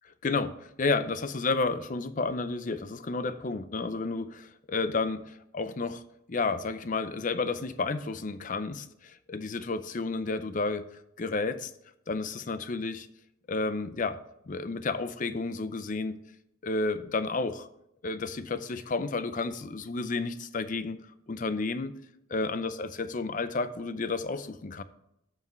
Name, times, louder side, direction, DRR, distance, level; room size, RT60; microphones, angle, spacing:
voice 1, 0.2-6.0 6.3-10.9 11.2-11.7 12.1-13.1 13.5-14.2 14.5-16.2 16.6-17.7 18.0-21.0 21.3-21.9 22.3-24.8, left 3 dB, 40° left, 13 dB, 0.5 m, -31 dB
13.0 x 7.3 x 3.2 m, 0.79 s
head